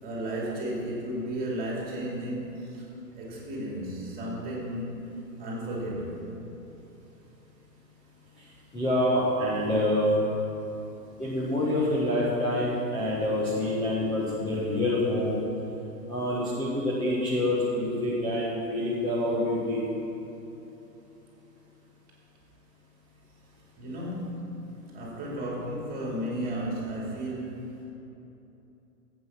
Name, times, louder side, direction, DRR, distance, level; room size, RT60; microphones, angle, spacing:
voice 1, 0.0-5.1 5.4-6.4 23.8-27.8, right 1 dB, 20° right, -3 dB, 2.8 m, -34 dB
voice 2, 8.7-10.2 11.2-15.4 16.1-19.8, left 1 dB, 10° left, -8 dB, 1.6 m, -26 dB
14.0 x 8.3 x 6.0 m, 2.9 s
hypercardioid pair, 130°, 49 cm